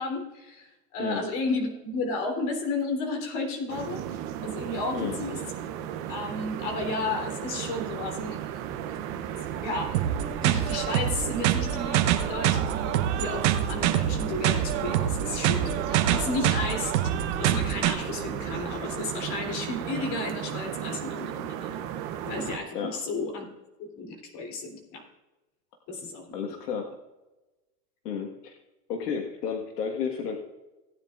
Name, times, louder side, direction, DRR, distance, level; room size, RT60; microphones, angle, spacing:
voice 1, 0.0-5.4 6.1-8.4 8.9-9.0 9.5-21.7 22.2-23.5 23.8-25.0 25.9-26.6, left 3 dB, 35° left, 2 dB, 3.4 m, -33 dB
sound 1, 3.7-22.6, right 10 dB, 25° right, 0.7 m, -34 dB
sound 2, 9.9-17.9, right 11 dB, 45° right, 1.0 m, -26 dB
voice 2, 26.3-26.9 28.0-28.5 28.9-30.4, left 6 dB, 75° left, 3 dB, 1.7 m, -32 dB
17.5 x 9.9 x 2.5 m, 1.1 s
hypercardioid pair, 145°, 48 cm